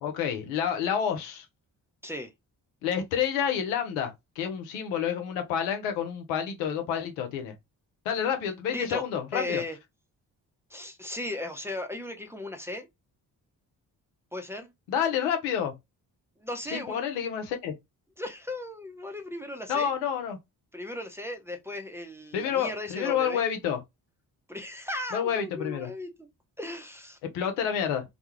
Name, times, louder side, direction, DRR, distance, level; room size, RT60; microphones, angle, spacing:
voice 1, 0.0-1.5 2.8-7.5 8.0-9.6 14.9-15.7 16.7-17.7 19.7-20.4 22.3-23.8 25.1-25.9 27.3-28.0, left 8 dB, 80° left, 0.7 m, -29 dB
voice 2, 8.7-9.0 9.3-9.8 10.7-12.9 14.3-14.7 16.4-17.0 18.2-19.9 20.7-23.4 24.5-26.3 26.6-27.2, left 1 dB, 5° right, 0.6 m, -36 dB
2.3 x 2.0 x 3.0 m
hypercardioid pair, 40°, 49 cm